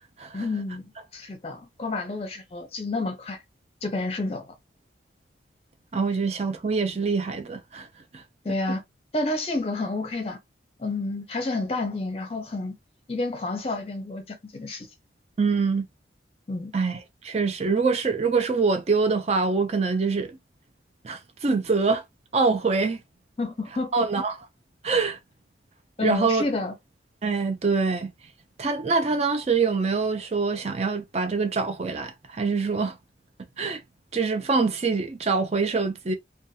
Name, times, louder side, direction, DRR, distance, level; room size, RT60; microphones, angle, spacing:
voice 1, 0.3-3.4 3.8-4.5 8.4-8.8 9.1-10.4 10.8-12.8 13.1-14.9 16.5-16.7 21.5-21.6 23.4-24.0 26.0-26.7, left 2 dB, 30° left, 0.6 m, -30 dB
voice 2, 5.9-7.9 8.1-8.2 15.4-15.9 16.7-20.4 21.0-22.0 22.3-23.0 23.9-24.4 24.8-25.2 26.0-26.4 27.2-28.1 28.6-33.0 33.6-33.8 34.1-36.1, right 4 dB, 35° right, 0.4 m, -24 dB
2.6 x 2.3 x 2.6 m
head